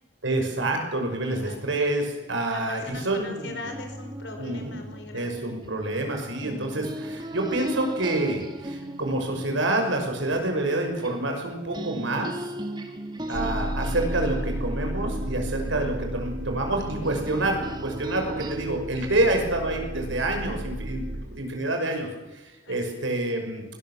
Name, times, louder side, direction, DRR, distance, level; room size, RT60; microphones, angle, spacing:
voice 1, 0.2-3.5 4.4-4.8 5.1-12.5 13.3-23.6, right 2 dB, 90° right, 4 dB, 6.1 m, -27 dB
voice 2, 2.5-5.4 13.3-13.5 21.1-21.2 22.6-23.0, left 2 dB, 65° left, 5 dB, 4.9 m, -41 dB
sound 1, 3.6-11.5 11.7-18.6, right 1 dB, 25° right, 2.0 m, -38 dB
sound 2, 13.3-21.2, equal, 55° right, 1.4 m, -33 dB
20.5 x 18.5 x 7.5 m, 1.1 s
head